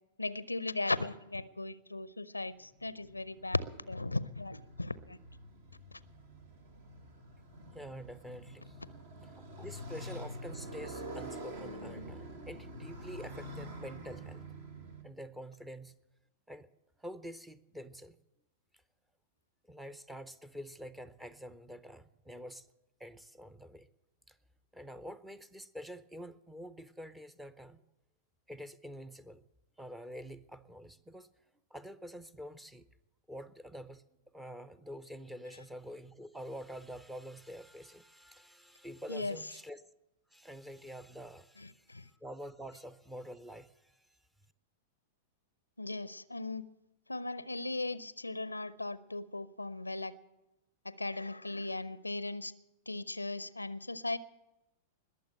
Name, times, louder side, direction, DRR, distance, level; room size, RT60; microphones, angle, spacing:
voice 1, 0.2-5.2 5.9-6.0 35.5-35.6 39.1-39.6 41.6-42.1 45.8-46.7 47.1-50.2 50.8-52.5 52.9-54.2, left 2 dB, 80° left, 19 dB, 0.5 m, -37 dB
Motorcycle, 2.5-15.0, right 1 dB, 55° right, 1.9 m, -47 dB
voice 2, 7.7-8.7 9.6-14.4 15.0-16.0 16.5-16.7 17.0-18.2 19.7-22.7 23.0-23.9 24.3-24.4 24.7-27.8 28.5-29.4 29.8-31.3 31.7-32.9 33.3-34.0 34.3-39.8 40.3-41.7 42.2-43.9, equal, 5° right, 16 dB, 0.6 m, -47 dB
20.5 x 7.1 x 8.8 m, 0.96 s
figure-of-eight pair, 95°, 0 cm